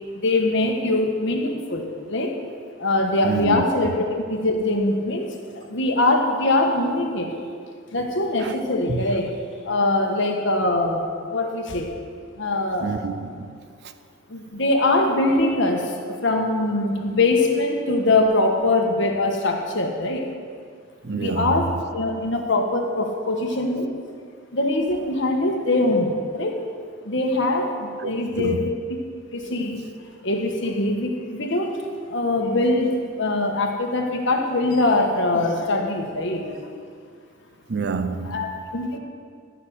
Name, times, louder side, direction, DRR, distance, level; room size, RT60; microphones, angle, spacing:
voice 1, 0.1-2.3 2.8-5.3 5.5-7.3 7.9-9.3 9.6-11.9 12.4-12.9 14.3-20.3 21.1-23.9 24.5-26.6 27.0-29.0 29.3-29.9 30.2-31.8 32.1-36.6 38.2-39.0, left 2 dB, 55° left, 1.5 m, -23 dB
voice 2, 3.2-3.6 8.4-8.5 8.9-9.0 12.8-13.5 21.0-21.5 28.0-28.6 37.7-38.4, right 4 dB, 50° right, 0.5 m, -27 dB
13.5 x 6.2 x 8.0 m
head